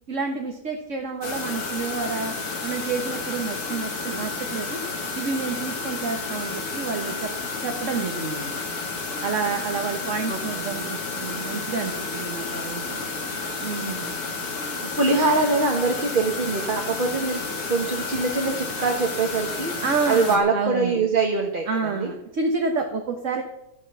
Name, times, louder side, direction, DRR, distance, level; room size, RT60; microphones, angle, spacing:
voice 1, 0.1-2.3 2.6-4.8 5.1-7.3 7.6-8.6 9.2-13.0 13.6-14.1 19.8-21.0 21.7-23.4, right 4 dB, 55° right, 3 dB, 1.7 m, -29 dB
sound 1, 1.2-20.4, left 4 dB, 85° left, 2.8 m, -31 dB
voice 2, 10.3-11.0 13.8-14.2 15.0-17.4 17.7-19.7 20.0-22.1, right 3 dB, 35° right, 2 dB, 1.6 m, -24 dB
13.5 x 10.0 x 6.9 m, 0.81 s
omnidirectional pair, 1.6 m